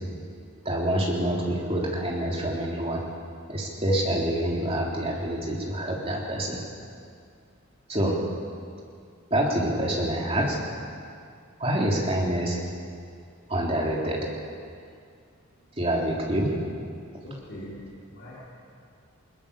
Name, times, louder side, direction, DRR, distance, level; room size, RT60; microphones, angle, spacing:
voice 1, 0.7-3.0 3.5-6.6 7.9-8.2 9.3-10.6 11.6-12.6 13.5-14.3 15.8-16.5, right 1 dB, 25° right, -2 dB, 3.6 m, -26 dB
voice 2, 17.2-18.5, equal, 55° left, -9 dB, 5.4 m, -41 dB
21.0 x 21.0 x 7.0 m, 2.3 s
head